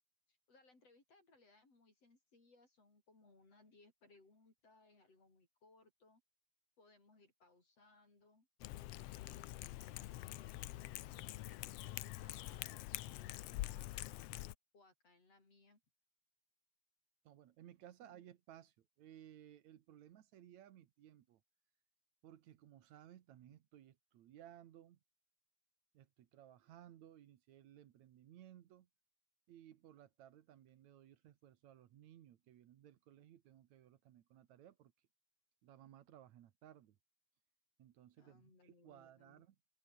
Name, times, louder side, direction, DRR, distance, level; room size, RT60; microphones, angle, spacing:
voice 1, 0.3-6.2 6.8-8.5 9.1-12.7 13.1-14.2 14.7-15.8 18.0-18.1 38.2-39.4, left 3 dB, 55° left, 7.7 m, -68 dB
Cat, 8.6-14.5, left 16 dB, 75° left, 1.5 m, -46 dB
voice 2, 17.2-21.4 22.2-25.0 25.9-28.9 29.5-34.9 35.6-37.0 37.8-39.6, right 11 dB, 70° right, 2.6 m, -60 dB
omnidirectional pair, 3.4 m